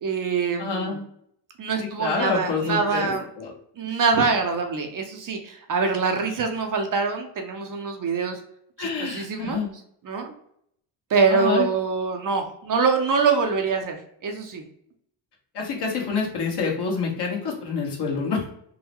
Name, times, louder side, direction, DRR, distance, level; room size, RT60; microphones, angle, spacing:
voice 1, 0.0-1.0 1.6-3.2 3.8-8.4 8.8-9.6 10.1-10.3 11.1-14.0 14.2-14.6, right 5 dB, 40° right, 4 dB, 0.7 m, -24 dB
voice 2, 0.6-1.0 2.0-3.5 8.8-9.7 11.3-11.7 15.5-18.5, left 5 dB, 55° left, -2 dB, 1.3 m, -27 dB
3.8 x 2.1 x 3.0 m, 0.70 s
supercardioid pair, 70°, 49 cm